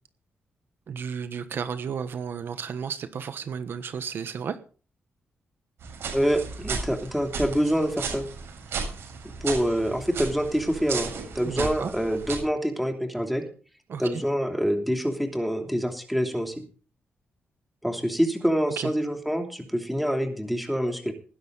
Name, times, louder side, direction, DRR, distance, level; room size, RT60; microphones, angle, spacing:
voice 1, 0.9-4.6 11.4-11.9 13.9-14.2 18.8-18.9, right 7 dB, 65° right, 10 dB, 1.2 m, -33 dB
sound 1, 5.8-12.4, right 5 dB, 80° right, 7.4 m, -35 dB
voice 2, 6.1-8.3 9.2-13.5 14.0-16.6 17.8-21.1, equal, ahead, 4 dB, 3.0 m, -26 dB
19.5 x 10.5 x 4.0 m, 0.39 s
cardioid pair, 115°, 4 cm